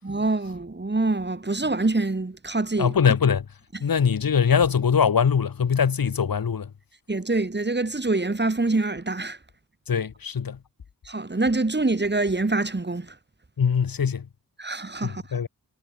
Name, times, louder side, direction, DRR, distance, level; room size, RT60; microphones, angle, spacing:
voice 1, 0.0-2.9 7.1-9.4 11.1-13.2 14.6-15.2, right 2 dB, 30° right, 7.1 m, -25 dB
voice 2, 2.8-3.5 3.8-6.7 9.9-10.6 13.6-14.3 15.0-15.5, left 7 dB, 85° left, 2.6 m, -22 dB
wide cardioid pair, 85°, 34 cm